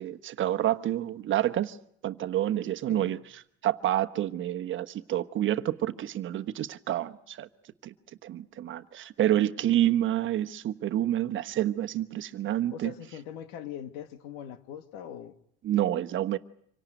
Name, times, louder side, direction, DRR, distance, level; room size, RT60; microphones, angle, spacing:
voice 1, 0.0-1.8 2.0-3.2 3.6-7.5 7.8-7.9 8.2-12.9 15.6-16.4, right 12 dB, 40° right, 1.2 m, -28 dB
voice 2, 12.7-15.3, left 9 dB, 90° left, 2.1 m, -41 dB
26.0 x 18.0 x 9.2 m
cardioid pair, 130°, 29 cm